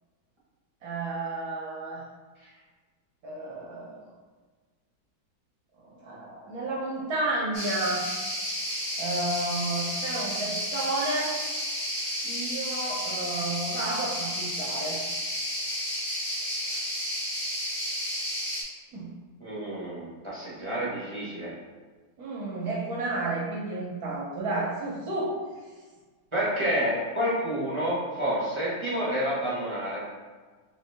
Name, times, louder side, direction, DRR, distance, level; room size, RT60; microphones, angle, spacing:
voice 1, 0.8-2.0 3.2-4.0 5.8-8.0 9.0-11.3 12.2-15.0 18.9-19.1 22.2-25.3, right 2 dB, 65° right, -4 dB, 1.1 m, -31 dB
sound 1, 7.5-18.6, equal, 40° left, 1.0 m, -32 dB
voice 2, 19.4-21.5 26.3-30.0, equal, 30° right, -8 dB, 0.6 m, -29 dB
3.7 x 3.3 x 3.3 m, 1.4 s
omnidirectional pair, 2.1 m